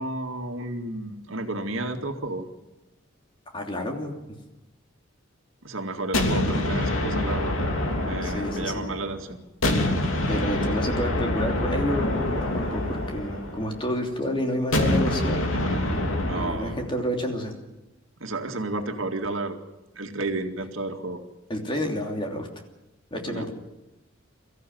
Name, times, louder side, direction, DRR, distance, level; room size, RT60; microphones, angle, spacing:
voice 1, 0.0-2.5 5.6-7.5 8.0-9.4 16.3-16.8 18.2-19.6 20.0-21.2 23.3-23.5, right 2 dB, 80° right, 5 dB, 2.1 m, -32 dB
voice 2, 3.5-4.2 8.2-8.9 10.3-15.4 16.3-17.5 21.5-22.5 23.1-23.5, left 1 dB, 25° left, 2 dB, 3.0 m, -29 dB
sound 1, 6.1-9.2 9.6-13.9 14.7-16.8, left 1 dB, 85° left, 3.0 m, -26 dB
23.5 x 14.5 x 9.4 m, 1.0 s
head